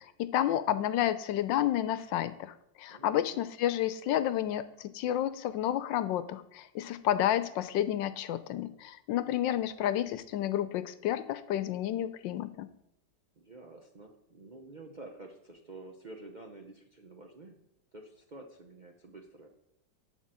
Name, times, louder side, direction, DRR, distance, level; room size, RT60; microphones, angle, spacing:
voice 1, 0.0-12.7, left 12 dB, 85° left, 14 dB, 1.3 m, -30 dB
voice 2, 2.9-3.4 13.4-17.6 17.9-19.5, right 2 dB, 45° right, 2 dB, 0.6 m, -49 dB
11.0 x 4.0 x 7.6 m, 0.78 s
omnidirectional pair, 2.0 m